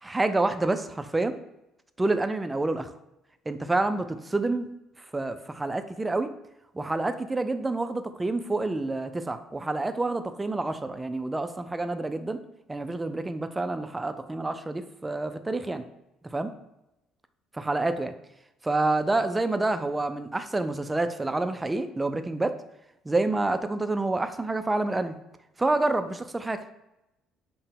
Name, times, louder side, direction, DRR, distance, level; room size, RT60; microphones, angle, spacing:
voice 1, 0.0-1.3 2.0-2.9 3.5-4.7 5.1-6.3 6.8-12.4 12.7-15.8 16.3-16.5 17.5-18.1 18.6-22.6 23.1-25.1 25.6-26.7, right 2 dB, 15° right, 9 dB, 0.3 m, -28 dB
5.4 x 2.1 x 3.5 m, 0.91 s
figure-of-eight pair, 50°, 0 cm